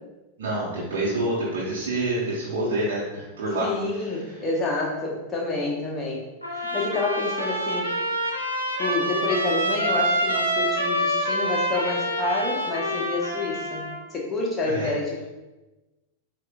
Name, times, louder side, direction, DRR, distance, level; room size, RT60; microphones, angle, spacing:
voice 1, 0.4-3.7 14.7-14.9, right 1 dB, 60° right, -8 dB, 1.1 m, -27 dB
voice 2, 3.6-7.9 8.8-15.2, left 3 dB, 20° left, -2 dB, 1.0 m, -28 dB
Trumpet, 6.4-14.0, equal, 85° left, 0.6 m, -26 dB
7.4 x 2.6 x 2.4 m, 1.1 s
figure-of-eight pair, 90°, 0 cm